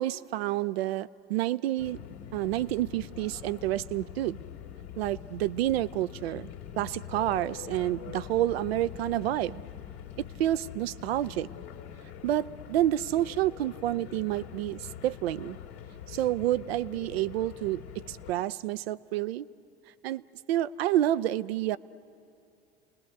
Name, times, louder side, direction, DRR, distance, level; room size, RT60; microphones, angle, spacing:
voice 1, 0.0-2.0 2.3-4.4 5.0-9.6 10.4-11.5 12.2-15.6 16.1-17.8 18.1-19.5 20.0-20.2 20.5-21.8, right 13 dB, 70° right, 16 dB, 0.6 m, -29 dB
sound 1, 1.8-18.3, left 9 dB, 85° left, 2.1 m, -44 dB
30.0 x 19.5 x 9.5 m, 2.5 s
hypercardioid pair, 80°, 31 cm